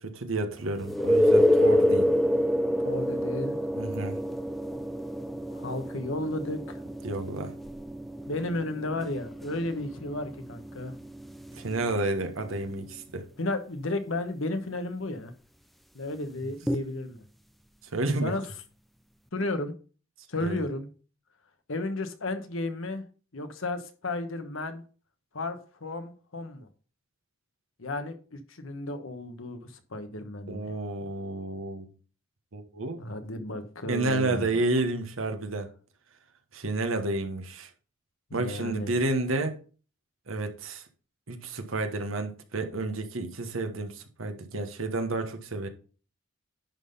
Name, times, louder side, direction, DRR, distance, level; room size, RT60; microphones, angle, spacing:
voice 1, 0.0-2.1 3.8-4.2 7.0-7.5 11.5-13.2 17.9-18.3 20.4-20.6 30.5-31.8 32.5-33.0 33.9-35.7 36.5-37.7 38.3-39.6 40.3-40.8 41.3-45.7, right 2 dB, 80° right, 1.3 m, -30 dB
sound 1, 0.8-12.4 16.7-16.8, left 1 dB, ahead, 0.4 m, -27 dB
voice 2, 2.8-3.6 5.5-6.8 8.3-11.0 13.4-15.3 15.9-17.2 18.2-18.4 19.3-19.7 20.3-20.9 21.7-23.0 23.3-24.8 25.3-26.7 27.8-30.7 33.0-34.6 38.3-38.9, left 2 dB, 75° left, 1.2 m, -33 dB
10.5 x 3.9 x 5.4 m
head